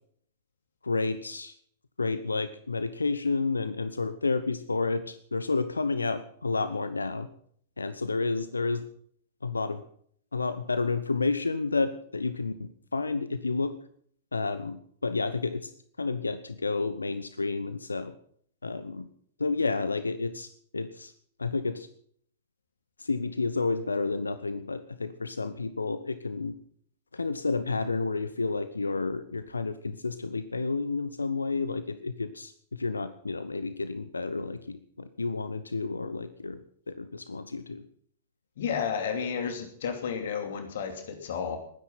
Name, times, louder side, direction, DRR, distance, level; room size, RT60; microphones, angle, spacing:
voice 1, 0.8-1.5 2.0-7.3 7.8-8.8 9.4-9.8 10.3-13.8 14.3-15.7 16.0-18.1 18.6-19.1 19.4-21.1 21.4-21.9 23.0-26.5 27.1-36.6 36.9-37.8, left 3 dB, 80° left, 13 dB, 0.9 m, -30 dB
voice 2, 38.6-41.6, left 7 dB, 60° left, 6 dB, 2.7 m, -32 dB
20.0 x 10.0 x 5.8 m, 0.62 s
figure-of-eight pair, 105°, 0 cm